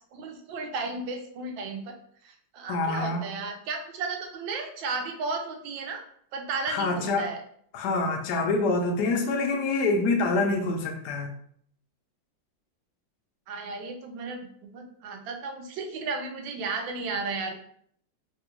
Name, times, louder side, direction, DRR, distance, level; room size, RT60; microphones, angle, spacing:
voice 1, 0.1-1.9 2.2-6.0 6.3-7.4 13.5-14.4 14.7-17.5, right 4 dB, 80° right, 4 dB, 1.3 m, -34 dB
voice 2, 2.7-3.2 6.7-7.3 7.7-11.3, left 3 dB, 70° left, 3 dB, 1.0 m, -26 dB
3.4 x 2.3 x 2.9 m, 0.64 s
omnidirectional pair, 2.1 m